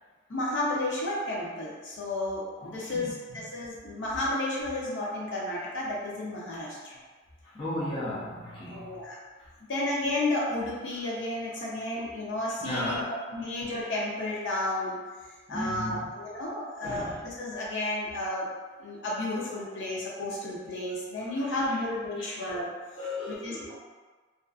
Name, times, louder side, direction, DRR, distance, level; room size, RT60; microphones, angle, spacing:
voice 1, 0.3-7.0 8.7-9.2 9.7-13.0 13.3-15.0 15.5-18.5 18.8-22.7 23.3-23.7, left 1 dB, 65° left, -6 dB, 0.6 m, -32 dB
voice 2, 2.6-3.1 7.4-9.0 11.9-12.0 12.6-13.2 15.5-16.1 16.8-17.2 21.2-21.8 22.1-22.3 23.0-23.7, left 1 dB, 25° left, -8 dB, 0.5 m, -36 dB
2.5 x 2.3 x 2.3 m, 1.4 s
head